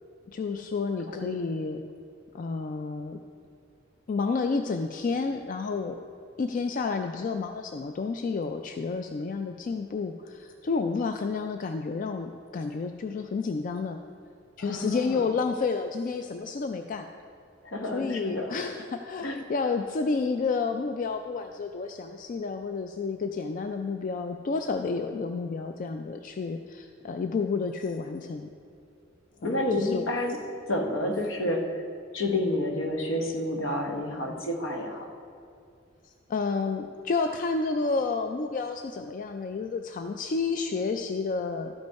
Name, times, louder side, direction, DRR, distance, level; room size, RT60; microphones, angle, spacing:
voice 1, 0.3-1.8 2.3-3.2 4.1-6.0 6.4-14.0 14.6-17.1 17.9-28.5 29.4-30.1 36.0-41.7, left 4 dB, 40° left, 6 dB, 0.3 m, -30 dB
voice 2, 14.6-15.3 17.6-18.6 19.2-19.4 29.4-30.4 30.7-31.9 32.1-35.1, left 1 dB, 70° left, 3 dB, 1.0 m, -29 dB
12.5 x 5.3 x 4.6 m, 2.5 s
head